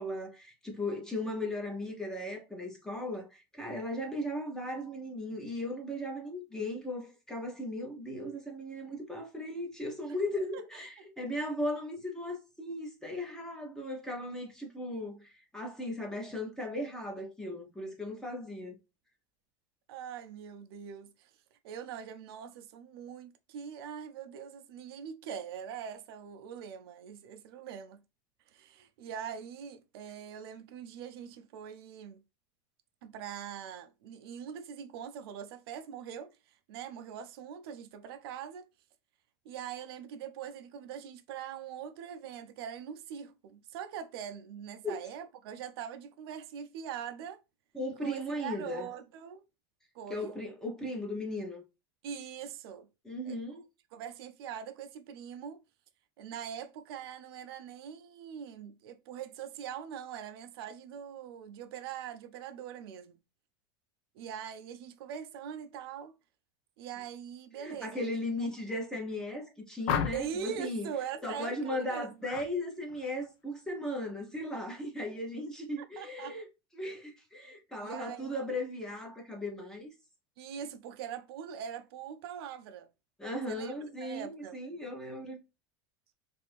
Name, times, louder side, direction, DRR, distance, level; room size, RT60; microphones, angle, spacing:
voice 1, 0.0-18.8 44.8-45.0 47.7-48.9 50.1-51.6 53.0-53.6 67.6-70.9 71.2-76.5 76.7-79.9 83.2-85.4, left 1 dB, 5° left, 0.7 m, -37 dB
voice 2, 11.0-11.3 19.9-21.3 21.6-28.0 28.5-32.2 33.0-38.7 39.4-47.4 48.0-49.4 49.9-50.4 52.0-52.9 53.3-53.4 53.9-55.6 56.2-63.2 64.1-66.1 66.8-68.1 68.4-68.5 70.1-72.1 75.8-76.4 77.8-78.3 80.4-82.9 83.5-83.7 84.0-84.6, right 8 dB, 75° right, 0.5 m, -42 dB
sound 1, 69.9-70.5 72.2-72.5 72.9-73.3, left 8 dB, 50° left, 0.4 m, -33 dB
2.6 x 2.5 x 3.4 m
supercardioid pair, 150°, 13 cm